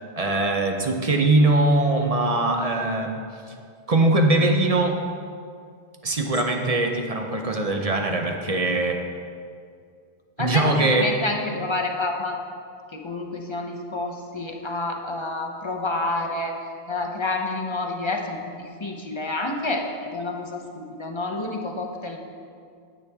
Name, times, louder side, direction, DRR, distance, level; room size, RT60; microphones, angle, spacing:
voice 1, 0.2-3.2 3.9-5.0 6.0-9.0 10.4-11.1, right 2 dB, 40° right, 3 dB, 0.7 m, -21 dB
voice 2, 10.4-12.4 12.9-16.5 16.9-22.2, left 2 dB, 30° left, 2 dB, 0.7 m, -29 dB
9.5 x 8.6 x 3.5 m, 2.2 s
omnidirectional pair, 1.1 m